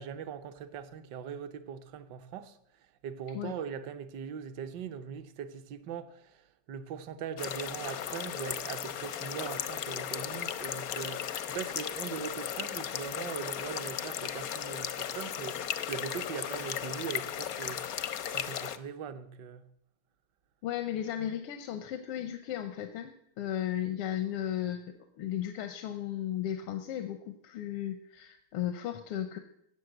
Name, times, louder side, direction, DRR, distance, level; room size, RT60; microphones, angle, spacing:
voice 1, 0.0-2.6 3.0-15.6 15.9-19.6, right 7 dB, 60° right, 1.3 m, -41 dB
sound 1, 7.4-18.8, left 9 dB, 70° left, 0.8 m, -36 dB
voice 2, 20.6-29.4, left 11 dB, 90° left, 1.7 m, -35 dB
14.5 x 8.3 x 7.9 m
omnidirectional pair, 2.4 m